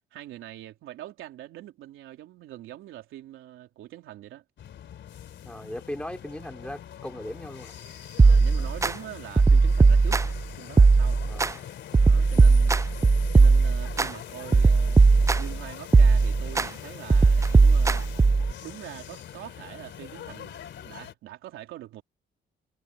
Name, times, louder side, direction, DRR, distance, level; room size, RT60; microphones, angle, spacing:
voice 1, 0.1-4.4 8.2-10.2 10.6-11.2 12.0-12.8 13.3-15.1 15.4-18.0 18.6-22.0, right 14 dB, 90° right, 3.3 m, -43 dB
sound 1, 4.6-21.1, left 10 dB, 70° left, 3.3 m, -43 dB
voice 2, 5.4-7.7 11.2-11.6, left 1 dB, 5° left, 3.9 m, -38 dB
sound 2, 8.2-8.9 9.4-10.4 10.8-11.5 11.9-14.1 14.5-15.6 15.9-16.7 17.1-18.5, right 4 dB, 15° right, 0.4 m, -18 dB
cardioid pair, 90°, 20 cm